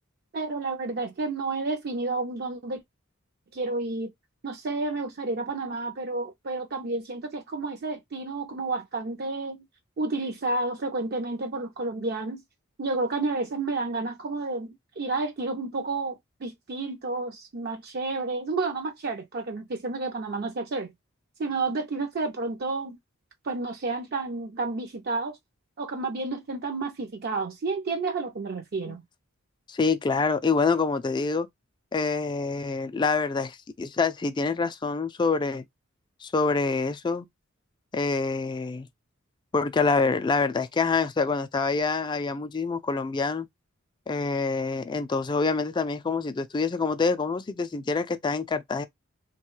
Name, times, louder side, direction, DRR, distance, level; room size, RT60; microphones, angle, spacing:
voice 1, 0.3-2.8 3.5-4.1 4.4-9.6 10.0-12.4 12.8-20.9 21.4-23.0 23.4-25.4 25.8-29.0, right 3 dB, 50° right, 0.5 m, -30 dB
voice 2, 29.7-31.5 31.9-35.6 36.2-37.3 37.9-38.9 39.5-43.5 44.1-48.8, left 4 dB, 20° left, 0.3 m, -26 dB
3.1 x 2.2 x 3.0 m
head